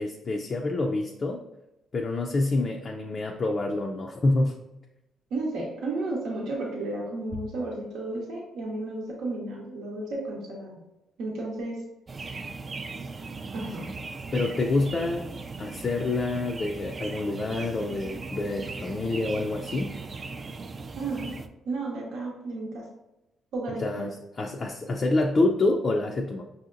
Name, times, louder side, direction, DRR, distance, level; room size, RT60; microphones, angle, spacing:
voice 1, 0.0-1.4 1.9-4.5 14.3-15.3 15.6-20.0 23.8-26.4, left 2 dB, 40° left, 1 dB, 0.4 m, -27 dB
voice 2, 5.3-10.8 11.2-11.8 13.5-13.9 20.9-21.4 21.7-22.8 23.5-24.0, right 2 dB, 80° right, -2 dB, 0.8 m, -33 dB
sound 1, 12.1-21.5, right 4 dB, 35° right, 0.3 m, -38 dB
5.5 x 2.7 x 2.5 m, 0.94 s
cardioid pair, 90°, 0 cm